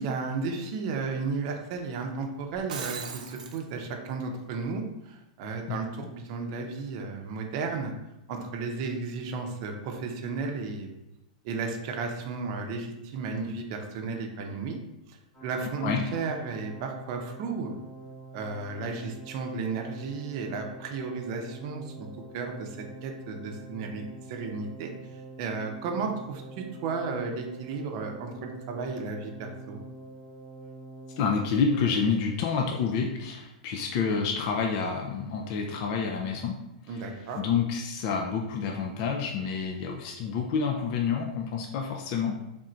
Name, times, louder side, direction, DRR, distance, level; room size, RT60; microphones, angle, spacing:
voice 1, 0.0-7.9 8.3-10.9 11.4-14.8 15.1-17.8 18.3-22.1 22.3-29.8 36.9-37.4, right 4 dB, 40° right, 2 dB, 0.6 m, -34 dB
Shatter, 2.5-3.6, right 6 dB, 80° right, 0.6 m, -38 dB
sound 1, 15.3-32.1, right 2 dB, 10° left, 1.1 m, -46 dB
voice 2, 31.2-36.6 37.4-42.4, left 5 dB, 40° left, 1 dB, 0.4 m, -28 dB
3.6 x 2.6 x 4.3 m, 0.90 s
supercardioid pair, 160°, 4 cm